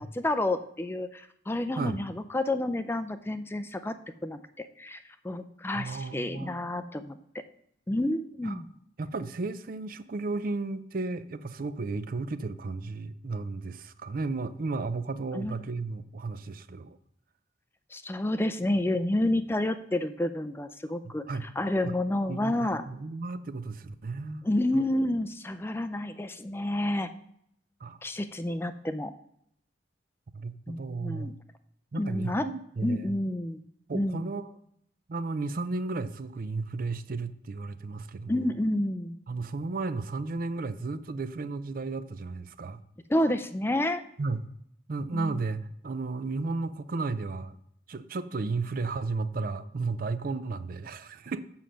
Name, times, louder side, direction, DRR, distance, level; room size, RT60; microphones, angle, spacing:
voice 1, 0.0-4.0 4.2-7.2 7.9-8.7 15.3-15.6 17.9-22.8 24.4-27.1 28.0-29.1 30.7-31.3 32.0-32.5 32.8-33.6 33.9-34.2 38.3-39.2 43.1-44.0 45.1-45.4, left 1 dB, 15° left, 11 dB, 0.4 m, -29 dB
voice 2, 5.7-6.7 8.4-8.6 9.0-17.0 21.3-21.5 21.8-21.9 22.3-24.4 24.7-24.8 27.8-28.0 30.3-31.4 31.9-33.1 33.9-34.5 35.1-38.5 39.3-42.8 44.2-44.5 44.9-47.6 47.9-51.4, right 3 dB, 50° right, 13 dB, 0.5 m, -34 dB
7.2 x 5.7 x 6.3 m, 0.71 s
head